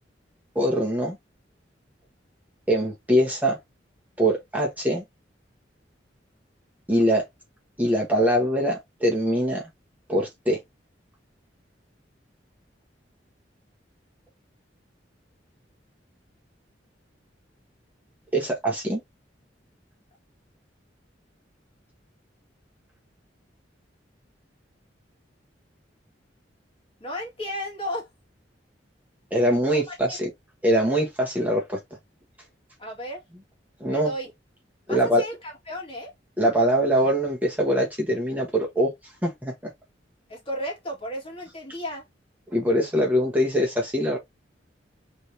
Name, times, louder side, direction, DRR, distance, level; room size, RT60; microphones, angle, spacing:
voice 1, 0.5-1.2 2.7-3.6 4.2-5.0 6.9-7.2 7.8-9.6 10.1-10.6 18.3-19.0 29.3-30.3 30.6-31.8 33.8-34.1 34.9-35.2 36.4-38.9 39.2-39.7 42.5-44.2, equal, 10° right, 1.3 m, -23 dB
voice 2, 27.0-28.1 29.7-30.2 32.8-33.2 33.9-34.3 34.9-36.1 40.3-42.1, equal, 30° left, 2.2 m, -34 dB
4.2 x 3.4 x 2.8 m
head